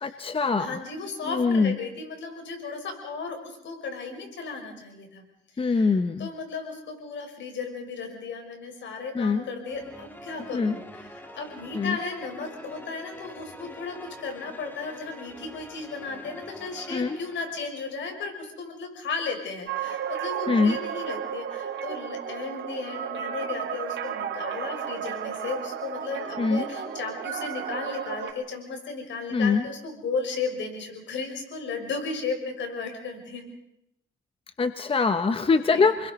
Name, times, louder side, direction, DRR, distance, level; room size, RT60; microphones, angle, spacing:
voice 1, 0.0-0.8 1.3-1.8 5.6-6.3 9.1-9.5 10.5-10.8 11.7-12.0 16.9-17.2 20.5-20.8 26.4-26.7 29.3-29.6 34.6-36.1, left 4 dB, 25° left, 10 dB, 1.0 m, -23 dB
voice 2, 0.6-5.2 5.5-5.9 6.2-33.5 35.7-35.9, left 4 dB, 70° left, 4 dB, 6.4 m, -35 dB
sound 1, 9.7-18.2, equal, 10° left, 2.3 m, -45 dB
sound 2, 19.7-28.3, right 8 dB, 65° right, 3.4 m, -33 dB
29.5 x 21.5 x 5.4 m, 0.82 s
cardioid pair, 90°, 20 cm